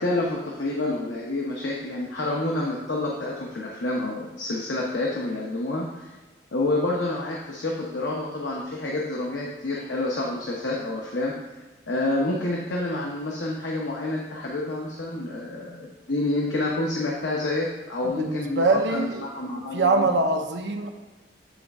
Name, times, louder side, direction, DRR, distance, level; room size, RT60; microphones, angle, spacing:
voice 1, 0.0-6.1 6.5-11.3 11.9-18.6 18.9-20.0, left 2 dB, 80° left, -2 dB, 0.9 m, -28 dB
voice 2, 18.0-19.3 19.7-20.9, right 3 dB, 75° right, 4 dB, 0.7 m, -23 dB
8.4 x 3.4 x 4.2 m, 1.2 s
head